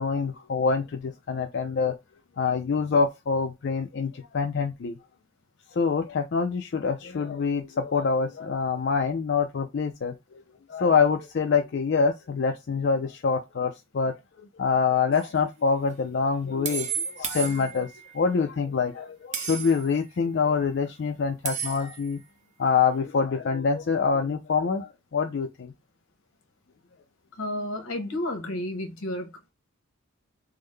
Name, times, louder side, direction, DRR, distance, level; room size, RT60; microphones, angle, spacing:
voice 1, 0.0-2.0 2.4-5.0 5.7-10.4 10.7-22.2 22.6-25.7, left 5 dB, 55° left, 0.4 m, -26 dB
sound 1, 15.1-15.3 16.6-18.1 19.3-19.9 21.4-22.1, right 6 dB, 35° right, 0.6 m, -33 dB
voice 2, 27.4-29.3, left 1 dB, 85° left, 1.1 m, -31 dB
3.6 x 2.0 x 3.2 m
head